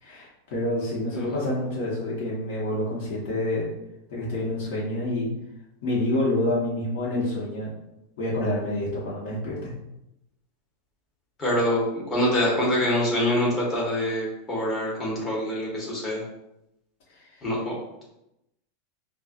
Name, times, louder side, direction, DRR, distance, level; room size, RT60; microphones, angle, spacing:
voice 1, 0.0-3.7 4.1-5.3 5.8-7.7 8.2-9.7 17.2-17.3, left 1 dB, 60° left, -6 dB, 1.2 m, -27 dB
voice 2, 11.4-16.2 17.4-17.7, left 1 dB, 20° left, -5 dB, 1.2 m, -25 dB
4.2 x 2.3 x 2.5 m, 0.87 s
supercardioid pair, 150°, 0 cm